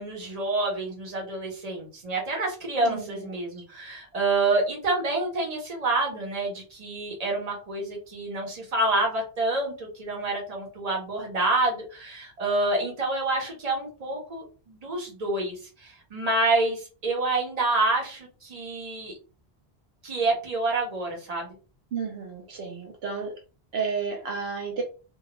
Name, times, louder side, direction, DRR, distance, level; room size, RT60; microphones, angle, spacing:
voice 1, 0.0-19.1 20.0-21.5, right 2 dB, 40° right, -1 dB, 1.0 m, -28 dB
voice 2, 2.8-3.3 3.6-3.7 21.9-23.3 23.7-24.8, right 5 dB, 75° right, 1 dB, 0.8 m, -32 dB
2.3 x 2.2 x 2.9 m, 0.35 s
omnidirectional pair, 1.1 m